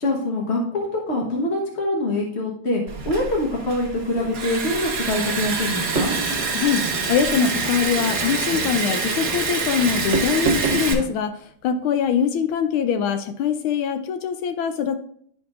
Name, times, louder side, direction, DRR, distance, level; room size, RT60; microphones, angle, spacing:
voice 1, 0.0-6.1, left 1 dB, 45° left, -1 dB, 1.0 m, -24 dB
Liquid, 2.9-10.9, right 4 dB, 50° right, 1.4 m, -26 dB
sound 1, 5.1-11.1, right 3 dB, 85° right, 0.4 m, -35 dB
sound 2, 6.0-6.5 7.9-8.2 10.1-10.9, right 3 dB, 65° right, 1.8 m, -25 dB
voice 2, 7.1-11.3 11.6-15.0, left 7 dB, 80° left, 7 dB, 1.4 m, -23 dB
11.0 x 5.3 x 2.4 m, 0.65 s
omnidirectional pair, 2.3 m